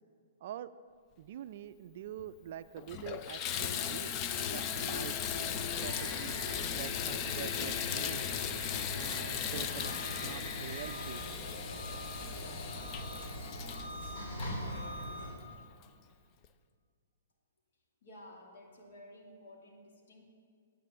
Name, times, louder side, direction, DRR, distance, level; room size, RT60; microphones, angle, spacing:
voice 1, 1.2-4.1 4.5-6.4 6.8-8.5 8.9-11.2, right 11 dB, 45° right, 13 dB, 0.3 m, -45 dB
Water tap faucet / Bathtub (filling or washing), 2.2-2.3 2.8-15.2 15.8-15.9 16.4-16.5, left 9 dB, 25° left, 0.4 m, -37 dB
sound 1, 3.6-15.3, equal, 45° left, 3.5 m, -42 dB
voice 2, 18.0-20.2, left 1 dB, 65° left, 0 dB, 2.6 m, -53 dB
10.0 x 8.4 x 7.3 m, 2.1 s
hypercardioid pair, 165°, 0 cm